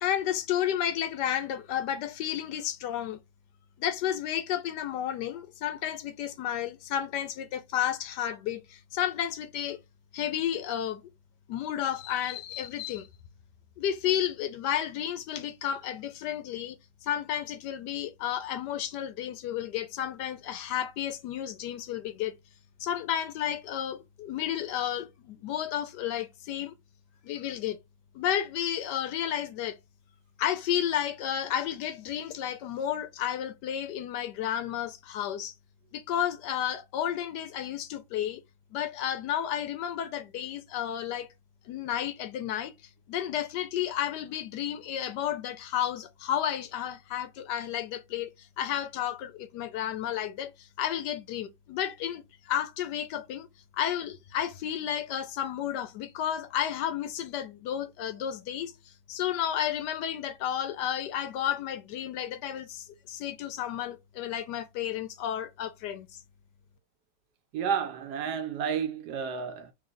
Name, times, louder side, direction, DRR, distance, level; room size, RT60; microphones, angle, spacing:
voice 1, 0.0-3.2 3.8-9.8 10.1-11.0 11.5-13.1 13.8-22.3 22.8-26.7 27.2-27.8 28.1-29.8 30.4-35.5 35.9-38.4 38.7-41.3 41.7-42.7 43.1-53.5 53.7-66.2, left 10 dB, 75° left, 1.1 m, -32 dB
voice 2, 67.5-69.7, right 7 dB, 75° right, 1.0 m, -31 dB
3.1 x 3.1 x 3.7 m
omnidirectional pair, 2.0 m